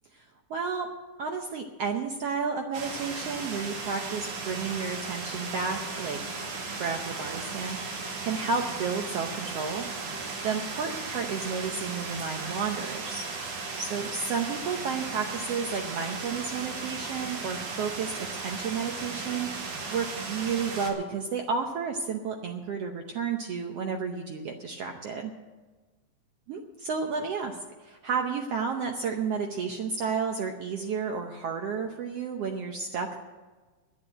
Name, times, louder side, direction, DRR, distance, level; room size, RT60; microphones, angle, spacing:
voice 1, 0.1-0.9 1.2-6.2 6.8-9.9 10.4-13.2 13.8-25.3 26.5-33.2, right 5 dB, 70° right, 3 dB, 1.5 m, -32 dB
sound 1, 2.7-20.9, right 4 dB, 85° right, 3.8 m, -36 dB
10.5 x 10.5 x 8.8 m, 1.3 s
omnidirectional pair, 3.7 m